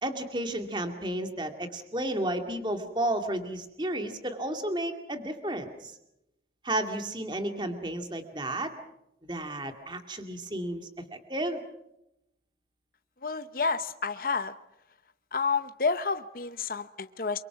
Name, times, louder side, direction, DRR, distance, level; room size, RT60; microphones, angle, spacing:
voice 1, 0.0-5.9 6.6-8.7 9.2-11.6, right 1 dB, 25° right, 6 dB, 2.3 m, -32 dB
voice 2, 13.2-14.5 15.3-17.4, left 4 dB, 50° left, 10 dB, 0.8 m, -30 dB
29.5 x 24.0 x 5.9 m, 0.86 s
head